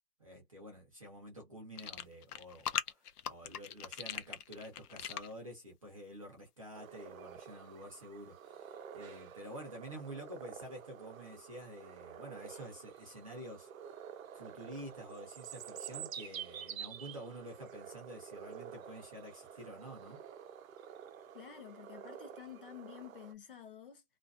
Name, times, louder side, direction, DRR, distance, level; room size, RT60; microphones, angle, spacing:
voice 1, 0.2-13.7 14.3-20.2, right 1 dB, 25° right, 0.5 m, -49 dB
sound 1, 1.8-5.3, left 9 dB, 80° left, 0.7 m, -40 dB
sound 2, 6.7-23.3, right 8 dB, 65° right, 0.6 m, -49 dB
voice 2, 21.3-24.0, left 9 dB, 35° left, 0.6 m, -50 dB
2.4 x 2.3 x 2.3 m
hypercardioid pair, 160°, 46 cm